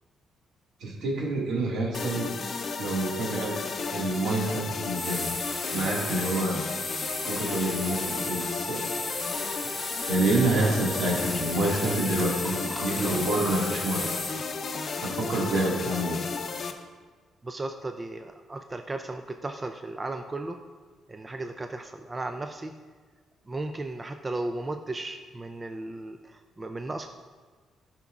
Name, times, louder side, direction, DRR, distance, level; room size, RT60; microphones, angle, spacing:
voice 1, 0.8-2.3 2.8-3.6 3.9-5.3 5.7-6.7 7.3-8.9 10.1-14.1 15.0-16.2, right 1 dB, 75° right, -3 dB, 2.0 m, -27 dB
sound 1, 1.9-16.7, left 4 dB, 50° left, 0.6 m, -34 dB
sound 2, 4.8-14.4, left 2 dB, 25° left, 1.6 m, -35 dB
sound 3, 11.2-14.5 14.8-15.3 16.0-16.1, equal, ahead, 1.0 m, -45 dB
voice 2, 17.4-20.6 21.1-22.7 23.5-27.1, right 2 dB, 25° right, 6 dB, 0.4 m, -35 dB
11.5 x 5.9 x 2.5 m, 1.5 s
cardioid pair, 90°, 0 cm